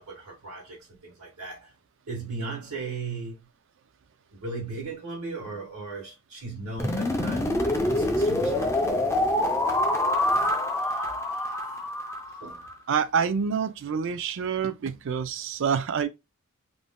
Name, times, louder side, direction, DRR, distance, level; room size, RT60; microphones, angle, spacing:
voice 1, 0.0-1.7 2.1-3.5 4.4-9.1 10.3-10.5 10.8-11.8 12.4-12.6, right 3 dB, 80° right, 1.1 m, -38 dB
sound 1, 6.8-12.7, left 1 dB, 15° left, 0.3 m, -26 dB
voice 2, 12.9-16.1, right 6 dB, 55° right, 0.4 m, -27 dB
2.5 x 2.1 x 3.5 m
head